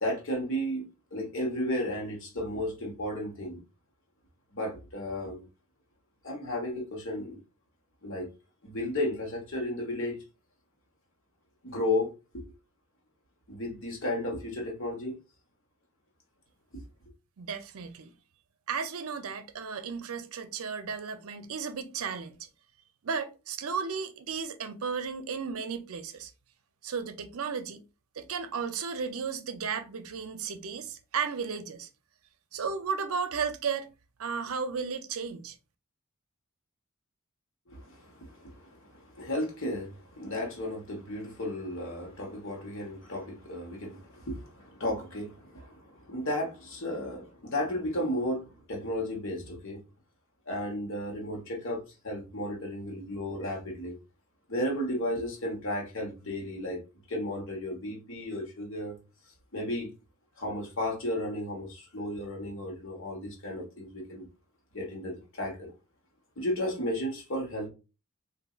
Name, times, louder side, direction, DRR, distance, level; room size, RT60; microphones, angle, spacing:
voice 1, 0.0-0.8 1.1-3.6 4.5-5.4 6.2-7.4 8.0-8.3 8.6-10.2 11.6-12.4 13.5-15.2 37.7-49.8 50.5-54.0 54.5-56.8 57.1-59.0 59.5-59.9 60.4-64.3 64.7-65.7 66.4-67.7, left 1 dB, 60° left, 1.2 m, -34 dB
voice 2, 17.4-18.1 18.7-22.5 23.0-26.3 26.8-27.8 28.2-31.9 32.5-33.9 34.2-35.6, right 6 dB, 75° right, 0.5 m, -34 dB
4.0 x 2.6 x 2.4 m
head